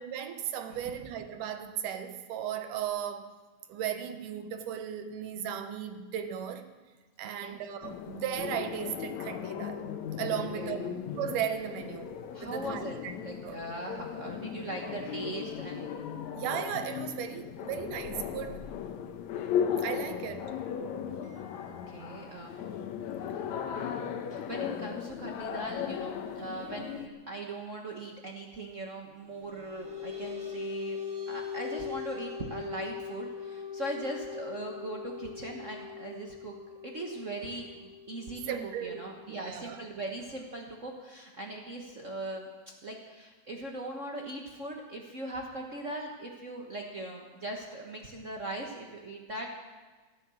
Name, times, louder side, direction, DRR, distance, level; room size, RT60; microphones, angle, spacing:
voice 1, 0.0-3.3 3.7-6.7 7.2-9.9 10.2-13.1 13.4-13.6 16.4-18.7 19.8-20.5 38.5-39.8, right 9 dB, 85° right, 8 dB, 2.6 m, -36 dB
sound 1, 7.8-27.1, left 8 dB, 70° left, 2.2 m, -37 dB
voice 2, 12.3-12.9 13.2-16.0 21.2-22.5 24.3-31.0 31.3-36.5 36.8-42.5 42.8-49.5, right 2 dB, 70° right, 0 dB, 0.7 m, -40 dB
sound 2, 29.3-40.2, left 7 dB, 25° right, 2.5 m, -41 dB
14.0 x 13.5 x 7.0 m, 1.3 s
omnidirectional pair, 3.6 m